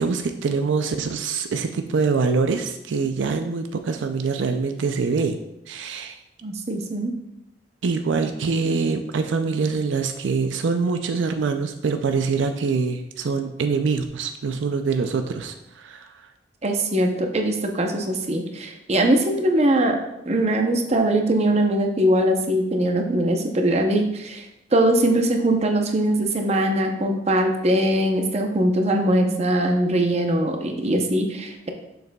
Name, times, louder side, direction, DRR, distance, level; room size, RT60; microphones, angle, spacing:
voice 1, 0.0-5.4 5.7-6.2 7.8-16.3, right 4 dB, 80° right, 7 dB, 0.4 m, -24 dB
voice 2, 6.4-7.1 16.6-20.0 20.2-24.5 24.7-31.7, right 1 dB, 35° right, 3 dB, 0.7 m, -21 dB
6.7 x 6.5 x 2.3 m, 0.88 s
head